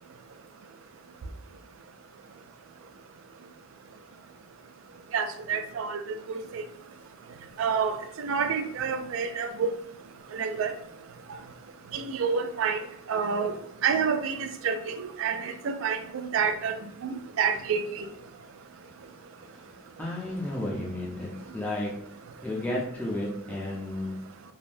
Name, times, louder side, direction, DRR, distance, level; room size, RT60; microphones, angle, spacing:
voice 1, 5.1-6.0 6.5-6.6 7.6-9.7 10.4-10.7 11.9-12.8 13.1-13.5 13.8-16.8 17.0-18.1, right 6 dB, 65° right, 8 dB, 0.3 m, -28 dB
voice 2, 20.0-21.9 22.4-24.2, left 1 dB, 10° left, -5 dB, 0.5 m, -32 dB
3.3 x 2.1 x 2.6 m, 0.73 s
head